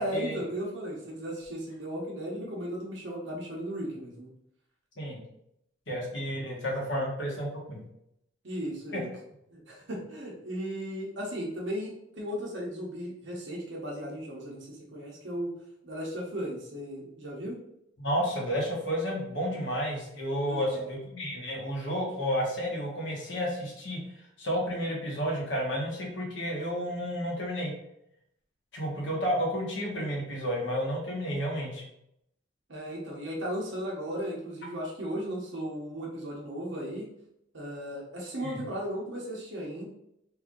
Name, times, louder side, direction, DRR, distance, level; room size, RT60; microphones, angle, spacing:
voice 1, 0.0-4.3 8.4-9.1 9.5-15.5 15.8-17.6 20.4-20.9 32.7-37.1 37.5-39.9, equal, 65° right, -2 dB, 0.9 m, -36 dB
voice 2, 5.9-7.8 18.0-24.0 24.4-27.7 28.7-31.8 38.4-38.6, equal, 65° left, -2 dB, 1.3 m, -31 dB
3.4 x 2.6 x 3.6 m, 0.78 s
head